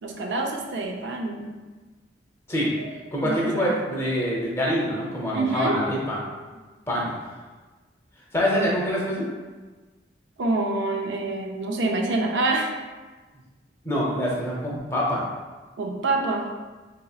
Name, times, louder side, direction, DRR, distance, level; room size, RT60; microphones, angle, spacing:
voice 1, 0.0-1.5 2.8-2.9 3.2-3.7 5.3-5.8 10.4-12.8 15.8-16.5, right 2 dB, 90° right, 2 dB, 0.5 m, -26 dB
voice 2, 3.1-6.2 6.9-7.3 8.3-9.3 13.8-15.2, equal, 15° left, -4 dB, 0.6 m, -25 dB
3.8 x 2.8 x 2.3 m, 1.3 s
head